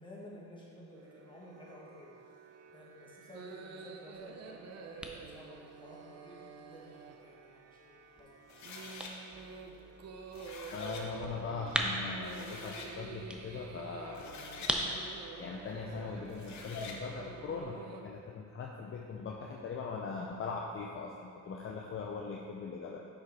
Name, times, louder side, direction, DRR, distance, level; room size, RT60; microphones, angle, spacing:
voice 1, 0.0-2.1 2.7-5.1 5.3-9.1, left 1 dB, 15° left, -5 dB, 1.7 m, -53 dB
sound 1, 0.9-18.0, right 5 dB, 55° right, 0.6 m, -49 dB
sound 2, 4.1-17.6, equal, 5° right, 0.6 m, -43 dB
sound 3, 8.5-9.1 10.1-11.1 11.9-12.0 12.2-12.9 14.0-14.8 16.2-17.0, left 4 dB, 65° left, 0.9 m, -46 dB
voice 2, 10.7-15.0 15.4-23.0, left 4 dB, 45° left, -1 dB, 0.6 m, -41 dB
5.8 x 5.4 x 4.2 m, 2.3 s
cardioid pair, 90°, 30 cm